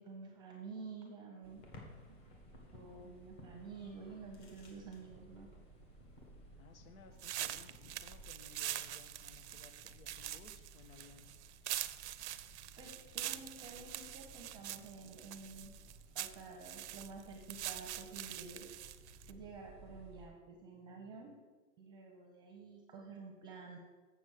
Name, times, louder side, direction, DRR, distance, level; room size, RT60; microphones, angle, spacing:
voice 1, 0.0-1.7 2.1-5.5 12.8-15.7 16.1-18.7 19.3-21.4 21.8-23.8, right 4 dB, 10° right, 1 dB, 0.8 m, -50 dB
sound 1, 1.4-20.3, right 2 dB, 15° left, 1.2 m, -59 dB
sound 2, 1.6-8.3, left 2 dB, 30° left, 1.7 m, -59 dB
voice 2, 6.6-11.4, left 5 dB, 80° left, 7 dB, 1.3 m, -60 dB
sound 3, 7.2-19.3, right 13 dB, 55° right, 0.5 m, -44 dB
7.3 x 7.2 x 6.4 m, 1.3 s
hypercardioid pair, 160°, 41 cm